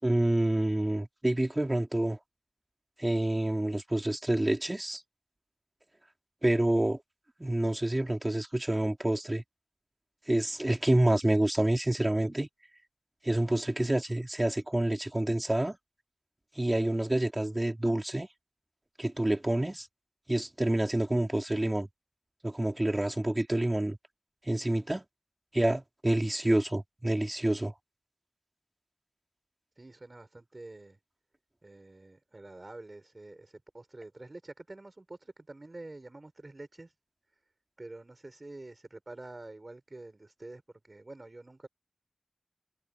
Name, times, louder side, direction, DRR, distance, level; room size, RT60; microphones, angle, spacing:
voice 1, 0.0-2.2 3.0-5.0 6.4-7.0 7.4-9.4 10.3-12.5 13.2-15.8 16.6-18.3 19.0-19.9 20.3-21.9 22.4-24.0 24.5-25.0 25.5-27.7, right 1 dB, 35° right, 3.6 m, -28 dB
voice 2, 29.8-31.0 31.6-36.9 37.8-41.7, right 2 dB, 60° right, 6.5 m, -47 dB
wide cardioid pair, 40°, 0 cm